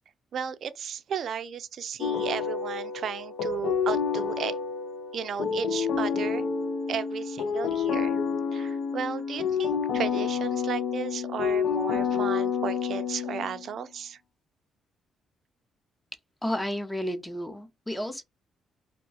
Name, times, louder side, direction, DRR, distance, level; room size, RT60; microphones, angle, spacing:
voice 1, 0.3-4.6 5.1-6.5 6.9-8.2 8.5-14.2, right 7 dB, 60° right, 0.4 m, -34 dB
sound 1, 2.0-13.7, left 6 dB, 80° left, 0.5 m, -29 dB
voice 2, 16.4-18.2, equal, 5° left, 0.6 m, -32 dB
2.3 x 2.2 x 3.9 m
cardioid pair, 90°, 0 cm